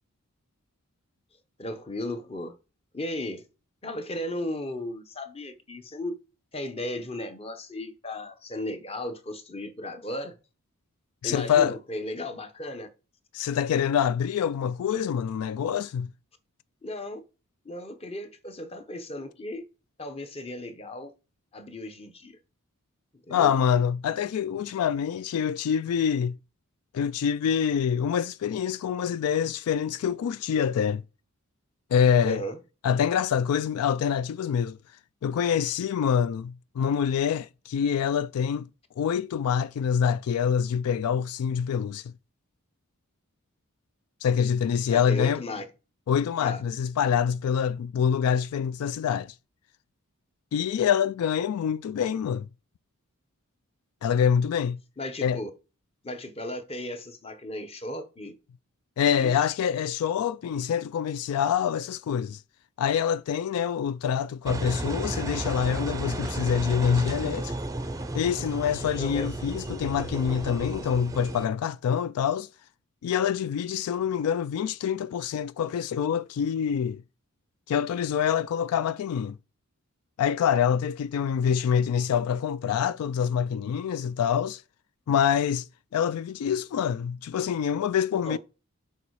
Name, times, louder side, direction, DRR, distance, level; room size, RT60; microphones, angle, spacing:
voice 1, 1.6-2.6 2.9-3.5 3.8-6.2 6.5-10.4 11.2-12.9 16.8-17.2 17.6-19.7 20.0-21.1 21.5-22.4 23.3-23.5 32.2-32.6 44.9-45.7 46.4-46.6 55.0-55.5 56.0-58.4 59.2-59.4 69.0-69.3 88.2-88.4, left 1 dB, 25° left, 0.9 m, -35 dB
voice 2, 11.2-11.7 13.3-16.1 23.3-26.4 26.9-31.0 31.9-32.4 32.8-34.8 35.2-38.7 39.0-42.1 44.2-45.4 46.1-49.3 50.5-52.5 54.0-54.8 55.2-55.4 59.0-62.4 62.8-67.6 68.1-72.5 73.0-77.0 77.7-79.4 80.2-84.6 85.1-85.7 85.9-88.4, left 8 dB, 85° left, 0.3 m, -26 dB
Engine, 64.4-71.4, right 2 dB, 15° right, 0.5 m, -33 dB
6.9 x 4.9 x 4.7 m
head